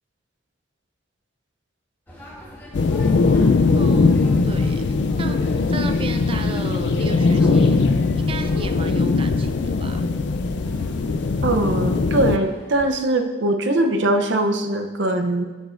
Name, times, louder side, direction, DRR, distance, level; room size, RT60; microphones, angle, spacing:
sound 1, 2.1-12.9, equal, 10° left, 1.4 m, -43 dB
sound 2, 2.7-12.4, left 3 dB, 70° left, 0.4 m, -20 dB
voice 1, 3.7-4.9 5.2-7.8 8.2-10.1, right 3 dB, 30° right, 7 dB, 0.5 m, -34 dB
voice 2, 11.4-15.5, right 1 dB, 75° right, 5 dB, 0.7 m, -21 dB
15.5 x 5.2 x 2.5 m, 1.2 s
head